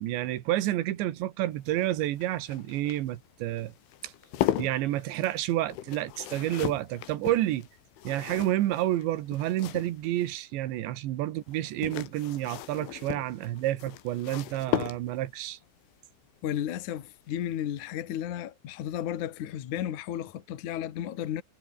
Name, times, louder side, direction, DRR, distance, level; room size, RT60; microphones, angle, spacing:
voice 1, 0.0-3.7 4.0-4.1 4.6-7.7 8.1-15.6, right 14 dB, 75° right, 3.6 m, -29 dB
sound 1, 1.5-10.4 11.5-15.4 17.0-17.3 17.6-17.7, left 13 dB, 85° left, 4.1 m, -37 dB
voice 2, 16.4-21.4, left 11 dB, 55° left, 2.5 m, -33 dB
omnidirectional pair, 5.4 m